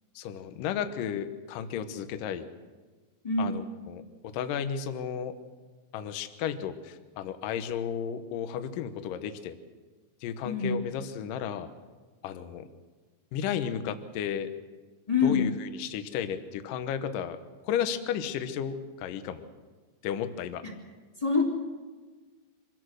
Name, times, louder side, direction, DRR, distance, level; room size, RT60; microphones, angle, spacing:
voice 1, 0.2-2.4 3.4-4.0 4.3-5.3 5.9-9.6 10.2-11.7 12.2-12.7 13.3-14.5 15.2-17.4 17.6-19.5 20.0-20.6, left 8 dB, 70° left, 9 dB, 2.3 m, -33 dB
voice 2, 3.2-3.6 10.4-10.8 15.1-15.5 20.6-20.7 21.2-21.4, left 4 dB, 10° left, -1 dB, 1.7 m, -25 dB
25.0 x 17.0 x 6.5 m, 1.4 s
omnidirectional pair, 4.9 m